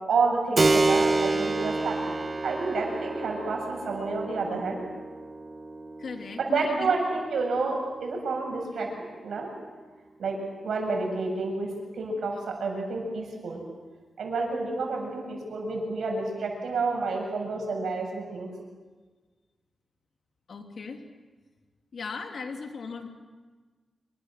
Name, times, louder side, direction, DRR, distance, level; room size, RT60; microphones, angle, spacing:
voice 1, 0.1-2.2 2.4-4.9 6.4-8.9 9.2-9.5 10.2-10.4 10.6-11.7 11.9-13.6 14.2-18.5, right 3 dB, 90° right, 2 dB, 7.4 m, -29 dB
Keyboard (musical), 0.6-8.8, right 2 dB, 35° right, 1.4 m, -29 dB
voice 2, 6.0-7.0 20.5-21.0 21.9-23.1, left 4 dB, 65° left, 4 dB, 3.2 m, -37 dB
27.0 x 25.5 x 7.6 m, 1.4 s
wide cardioid pair, 110°, 0 cm